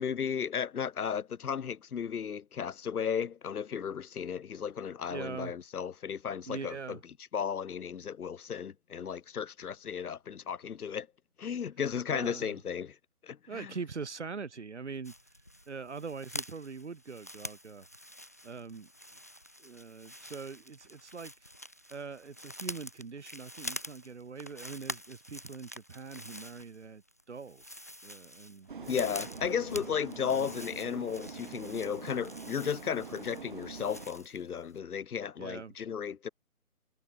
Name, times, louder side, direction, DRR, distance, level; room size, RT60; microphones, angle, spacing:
voice 1, 0.0-7.0 7.3-11.1 11.4-13.0 13.2-13.7 28.8-36.3, left 7 dB, 80° left, 0.8 m, -34 dB
voice 2, 5.1-5.5 6.5-7.0 12.1-12.6 13.5-15.1 15.7-17.9 18.4-18.9 19.6-21.3 21.9-28.7 30.3-30.5 35.4-35.7, right 5 dB, 50° right, 2.4 m, -42 dB
sound 1, 15.0-34.5 34.8-34.9, equal, 10° left, 1.1 m, -46 dB
sound 2, 28.7-34.1, right 5 dB, 35° right, 3.1 m, -45 dB
hypercardioid pair, 175°, 44 cm